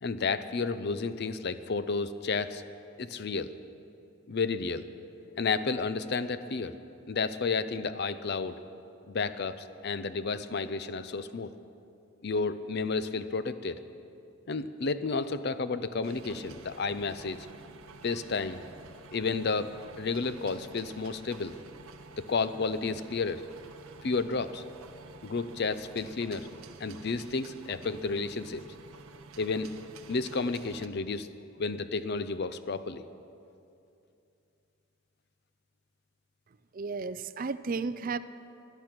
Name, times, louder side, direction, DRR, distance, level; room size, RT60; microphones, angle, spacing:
voice 1, 0.0-2.6 3.0-3.5 4.3-4.9 5.4-6.7 7.1-8.6 9.1-11.5 12.2-13.8 14.5-17.5 18.0-18.6 19.1-21.5 22.2-23.4 24.0-24.6 25.2-26.5 26.8-28.6 29.4-29.7 30.1-31.3 31.6-33.0, left 4 dB, 50° left, 13 dB, 0.5 m, -31 dB
sound 1, 16.0-30.9, right 4 dB, 90° right, 0.8 m, -50 dB
voice 2, 36.7-38.2, right 4 dB, 40° right, 13 dB, 0.4 m, -33 dB
17.0 x 11.0 x 6.0 m, 2.7 s
head